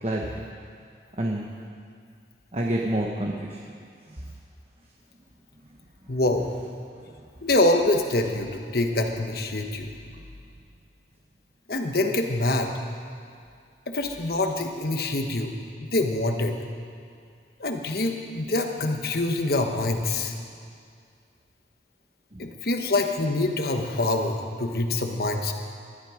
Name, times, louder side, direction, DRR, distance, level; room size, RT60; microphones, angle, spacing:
voice 1, 0.0-0.4 1.2-1.5 2.5-3.6 4.1-4.2 10.1-10.2 22.3-22.5, right 1 dB, 35° right, 0 dB, 1.0 m, -28 dB
voice 2, 6.1-6.5 7.4-9.9 11.7-12.7 13.9-15.5 15.8-16.6 17.6-20.3 22.4-25.5, left 2 dB, 55° left, 4 dB, 1.3 m, -25 dB
20.0 x 12.5 x 5.1 m, 2.3 s
head